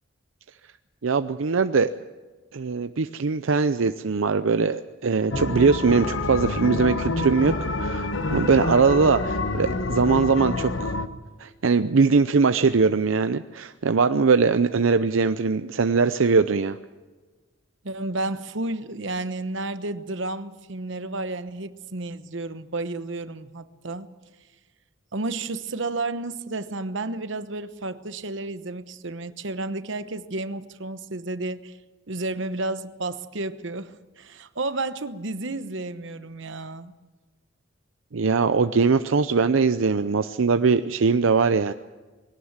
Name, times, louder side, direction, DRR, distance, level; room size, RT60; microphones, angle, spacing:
voice 1, 1.0-1.9 2.5-11.0 11.4-16.8 38.1-41.7, right 4 dB, 80° right, 10 dB, 0.6 m, -21 dB
sound 1, 5.3-11.1, left 2 dB, 70° left, 1.1 m, -27 dB
voice 2, 17.8-24.1 25.1-31.7 32.1-36.9, right 2 dB, 65° right, 12 dB, 1.1 m, -31 dB
21.5 x 18.0 x 7.4 m, 1.3 s
head